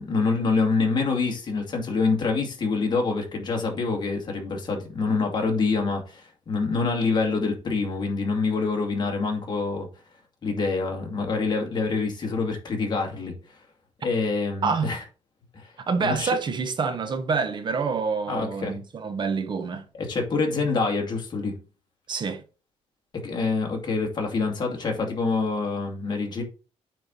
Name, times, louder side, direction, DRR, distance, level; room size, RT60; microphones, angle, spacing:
voice 1, 0.0-9.9 10.4-13.3 14.0-15.0 15.5-15.7 16.0-16.4 18.3-18.8 19.9-21.6 23.2-26.4, left 4 dB, 40° left, 2.4 m, -26 dB
voice 2, 14.6-15.0 15.9-19.8 22.1-22.4, right 5 dB, 40° right, 1.0 m, -27 dB
9.1 x 4.6 x 4.1 m
cardioid pair, 135°, 12 cm